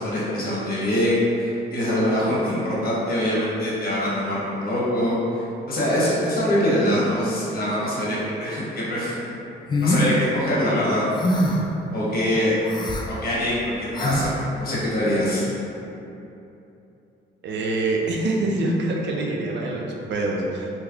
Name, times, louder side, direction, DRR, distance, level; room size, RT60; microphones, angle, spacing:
voice 1, 0.0-9.2 9.8-11.5 11.9-12.5 13.1-15.4, equal, 50° left, -7 dB, 1.0 m, -24 dB
sound 1, 9.7-10.1 11.1-11.7 12.6-13.1 13.9-14.3, left 1 dB, 25° left, 0.3 m, -23 dB
voice 2, 17.4-20.7, right 2 dB, 65° right, -1 dB, 0.5 m, -25 dB
3.3 x 2.8 x 2.4 m, 2.8 s
cardioid pair, 90°, 20 cm